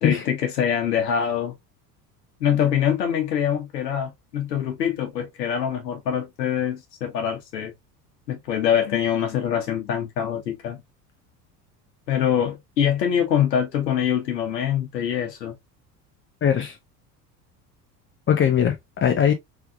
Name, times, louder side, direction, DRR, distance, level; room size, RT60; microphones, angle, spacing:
voice 1, 0.0-1.6 2.4-7.7 8.3-10.8 12.1-15.6, left 9 dB, 75° left, 1.0 m, -24 dB
voice 2, 16.4-16.8 18.3-19.3, left 8 dB, 25° left, 0.6 m, -20 dB
3.5 x 3.0 x 2.3 m
figure-of-eight pair, 65°, 50 cm